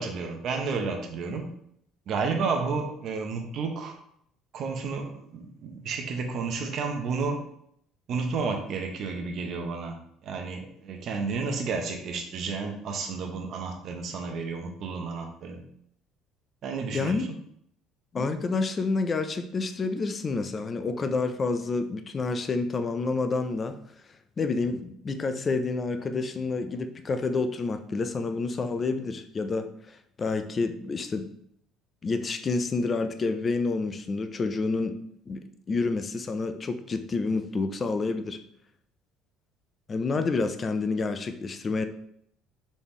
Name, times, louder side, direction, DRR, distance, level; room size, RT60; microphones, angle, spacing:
voice 1, 0.0-1.5 2.1-4.0 4.5-7.4 8.1-9.9 10.2-15.6 16.6-17.3, right 4 dB, 50° right, 3 dB, 0.7 m, -31 dB
voice 2, 16.9-17.3 18.1-23.8 24.4-31.3 32.0-35.0 35.3-38.4 39.9-41.8, left 3 dB, 30° left, 9 dB, 0.4 m, -29 dB
4.1 x 3.0 x 3.6 m, 0.70 s
cardioid pair, 130°, 0 cm